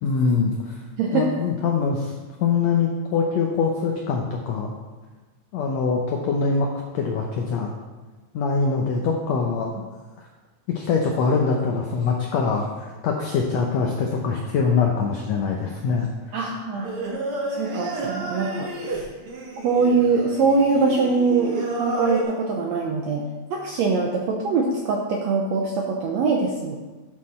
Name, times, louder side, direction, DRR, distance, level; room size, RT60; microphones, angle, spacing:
voice 1, 0.0-0.8 1.1-2.1 2.4-4.8 5.5-7.7 8.3-9.7 10.2-10.3 10.7-16.4, left 5 dB, 85° left, 1 dB, 1.5 m, -23 dB
voice 2, 1.0-1.4 16.3-16.9 17.5-19.1 19.6-26.8, right 4 dB, 80° right, 0 dB, 1.6 m, -23 dB
Singing, 16.8-22.2, right 2 dB, 55° right, 1.7 m, -31 dB
9.4 x 6.4 x 4.2 m, 1.2 s
omnidirectional pair, 4.0 m